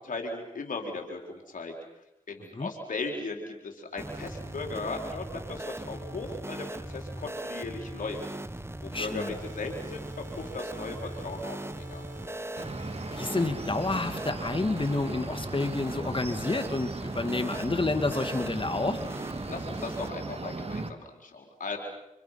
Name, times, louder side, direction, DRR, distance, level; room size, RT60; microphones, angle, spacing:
voice 1, 0.0-1.7 2.3-8.2 8.8-12.0 19.5-21.8, left 3 dB, 80° left, 2 dB, 4.4 m, -37 dB
sound 1, 4.0-20.1, right 1 dB, 20° right, 1.4 m, -39 dB
voice 2, 8.9-9.4 13.1-19.0, left 3 dB, 40° left, 8 dB, 2.4 m, -29 dB
sound 2, 9.0-14.0, right 1 dB, 70° right, 5.0 m, -49 dB
sound 3, 12.6-20.9, right 3 dB, 50° right, 2.4 m, -38 dB
29.5 x 27.5 x 5.9 m, 0.86 s
cardioid pair, 45°, 14 cm